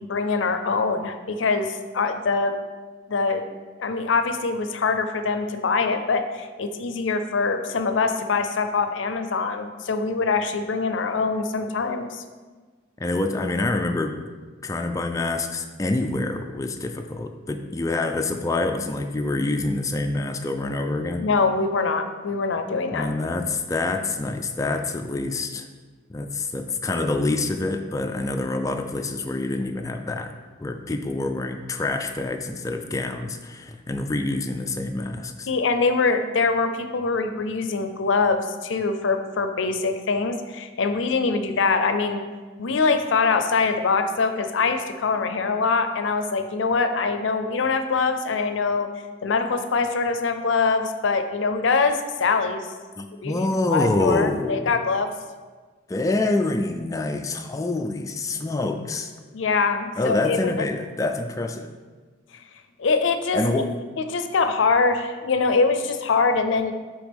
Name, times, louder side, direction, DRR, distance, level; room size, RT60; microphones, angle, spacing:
voice 1, 0.1-2.5 3.1-3.4 3.8-12.2 21.2-23.1 35.5-42.2 42.6-48.9 49.2-52.7 53.2-55.1 59.3-60.5 62.8-63.6 64.0-66.7, left 4 dB, 80° left, 8 dB, 0.5 m, -23 dB
voice 2, 13.0-14.3 14.6-21.3 22.9-25.7 26.1-30.3 30.6-35.5 53.0-54.7 55.9-59.1 60.0-61.7 63.3-63.7, left 2 dB, 15° left, 5 dB, 0.3 m, -26 dB
9.5 x 3.5 x 3.5 m, 1.4 s
head